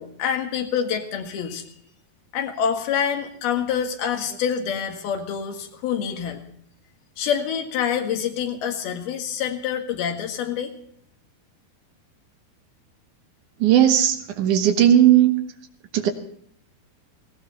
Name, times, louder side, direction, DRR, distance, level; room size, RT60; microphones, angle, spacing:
voice 1, 0.0-1.6 2.3-6.4 7.2-10.7, left 8 dB, 70° left, 4 dB, 3.7 m, -26 dB
voice 2, 13.6-15.3 15.9-16.1, right 11 dB, 65° right, 6 dB, 2.4 m, -16 dB
19.0 x 16.5 x 4.2 m, 0.65 s
omnidirectional pair, 4.6 m